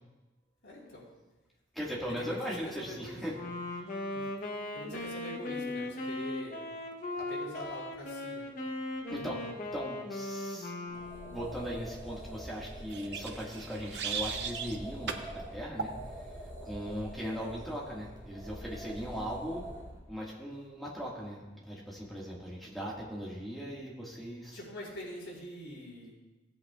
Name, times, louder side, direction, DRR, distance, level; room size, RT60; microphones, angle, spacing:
voice 1, 0.6-1.1 2.2-2.4 2.6-3.4 4.1-4.3 4.7-6.6 7.2-8.4 24.5-26.1, left 1 dB, 80° left, -5 dB, 3.9 m, -44 dB
voice 2, 1.7-3.4 9.1-10.7 11.3-15.9 16.2-16.3 16.6-19.7 20.1-24.6, equal, ahead, -5 dB, 1.8 m, -39 dB
Wind instrument woodwind instrument, 3.3-11.6, left 2 dB, 45° left, 0.9 m, -38 dB
sound 1, 10.9-20.0, right 1 dB, 20° right, 2.3 m, -45 dB
sound 2, 12.9-14.8 15.1-15.3 15.8-16.0, right 6 dB, 65° right, 0.7 m, -37 dB
17.0 x 8.5 x 2.4 m, 1.1 s
head